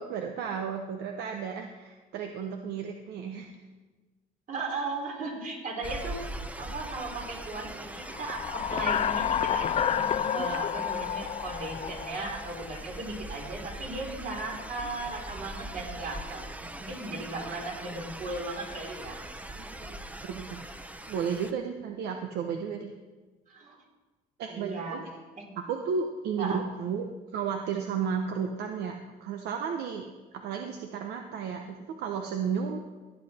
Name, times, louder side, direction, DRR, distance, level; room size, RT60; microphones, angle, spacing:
voice 1, 0.0-3.5 19.6-20.0 20.3-20.6 21.1-22.9 24.4-25.1 25.6-28.9 29.2-30.0 30.3-32.8, right 6 dB, 75° right, 4 dB, 0.9 m, -33 dB
voice 2, 4.5-19.2 23.5-23.8 24.5-25.0 25.4-25.5 26.4-26.6, right 2 dB, 50° right, 0 dB, 3.4 m, -37 dB
sound 1, 5.8-21.5, right 1 dB, 10° right, 0.7 m, -42 dB
sound 2, 8.1-12.8, left 9 dB, 40° left, 0.4 m, -30 dB
16.5 x 8.1 x 4.3 m, 1.3 s
cardioid pair, 110°, 17 cm